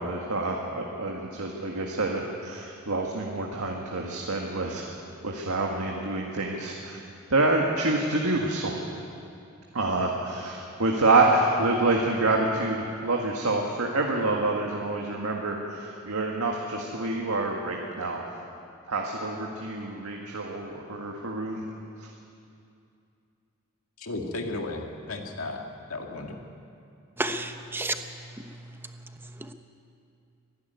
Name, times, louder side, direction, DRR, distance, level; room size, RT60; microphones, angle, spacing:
voice 1, 0.0-4.8 5.2-7.0 7.3-8.7 9.7-18.2 18.9-21.6, right 2 dB, 85° right, 0 dB, 1.8 m, -27 dB
voice 2, 24.0-25.6 25.9-26.4, left 2 dB, 75° left, 2 dB, 2.2 m, -34 dB
voice 3, 27.2-28.0 28.4-28.5 29.4-29.5, right 2 dB, 10° right, 7 dB, 1.0 m, -31 dB
24.0 x 11.5 x 9.4 m, 2.6 s
head